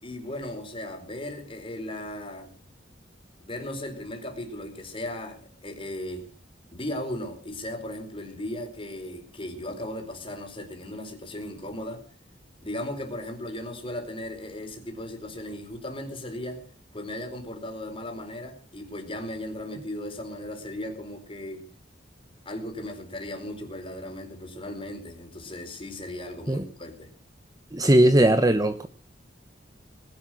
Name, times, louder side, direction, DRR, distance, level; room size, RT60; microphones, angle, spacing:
voice 1, 0.0-2.5 3.4-6.3 6.7-12.0 12.6-16.6 16.9-21.7 22.4-27.1, left 1 dB, 30° left, 4 dB, 4.4 m, -36 dB
voice 2, 27.7-28.9, right 1 dB, 20° right, 10 dB, 1.0 m, -19 dB
20.0 x 11.5 x 6.3 m, 0.39 s
head